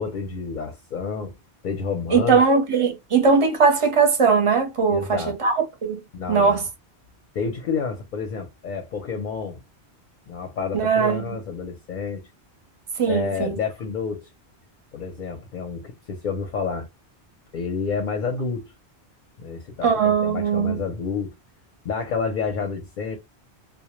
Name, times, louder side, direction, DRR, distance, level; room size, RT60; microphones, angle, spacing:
voice 1, 0.0-1.3 1.6-2.4 4.9-5.3 6.1-6.7 7.3-9.6 10.3-12.2 13.1-14.3 14.9-16.9 17.5-18.7 19.4-21.3 21.8-23.2, left 5 dB, 55° left, 0.6 m, -29 dB
voice 2, 2.1-6.0 6.3-6.6 10.7-11.4 13.0-13.6 19.8-20.8, right 5 dB, 35° right, 0.6 m, -20 dB
2.1 x 2.1 x 3.0 m
omnidirectional pair, 1.1 m